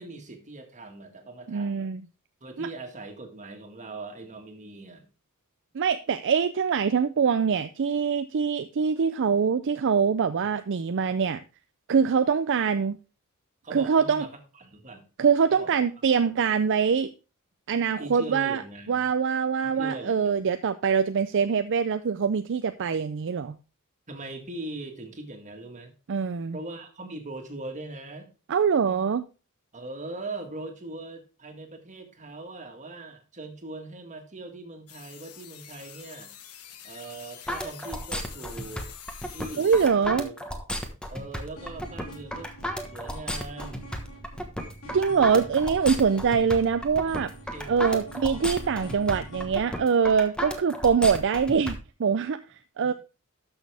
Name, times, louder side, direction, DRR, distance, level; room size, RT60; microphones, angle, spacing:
voice 1, 0.0-1.9 2.4-5.1 13.6-15.1 15.5-15.8 16.2-16.3 18.0-19.1 19.6-20.5 24.1-25.9 26.5-28.3 29.7-36.3 36.8-38.9 39.3-40.3 41.1-42.5 42.9-43.9 47.5-48.4 52.8-52.9, right 2 dB, 35° right, 1.9 m, -40 dB
voice 2, 1.5-2.0 2.6-2.7 5.7-11.4 11.9-13.0 13.7-14.2 15.2-17.1 17.7-18.6 18.9-23.5 26.1-26.6 28.5-29.2 39.6-40.3 44.9-47.3 47.7-52.4 52.8-52.9, right 6 dB, 55° right, 0.4 m, -24 dB
sound 1, 34.9-39.9, left 9 dB, 85° left, 1.2 m, -46 dB
sound 2, 37.5-51.7, equal, 5° left, 1.2 m, -34 dB
sound 3, 41.6-49.5, right 1 dB, 70° left, 3.3 m, -45 dB
12.5 x 6.3 x 3.4 m
head